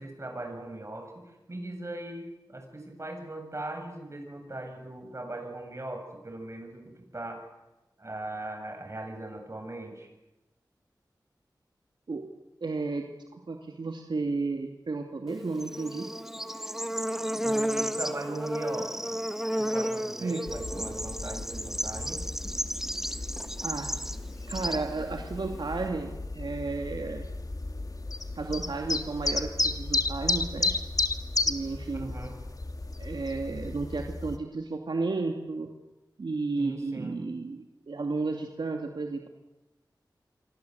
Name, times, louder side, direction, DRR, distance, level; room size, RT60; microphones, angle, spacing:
voice 1, 0.0-7.4 8.0-10.1 17.4-19.2 19.6-22.2 31.9-32.4 36.6-37.2, right 2 dB, 40° right, 3 dB, 7.9 m, -39 dB
voice 2, 12.6-16.1 20.2-20.4 23.6-23.9 24.5-27.3 28.4-30.7 31.5-32.1 33.0-35.7 36.2-39.3, right 3 dB, 75° right, 3 dB, 2.5 m, -33 dB
Bird / Insect, 15.3-25.9, equal, 5° right, 1.3 m, -33 dB
sound 1, 20.5-34.4, left 3 dB, 50° left, 1.9 m, -33 dB
27.5 x 24.5 x 8.2 m, 1.0 s
wide cardioid pair, 75°, 8 cm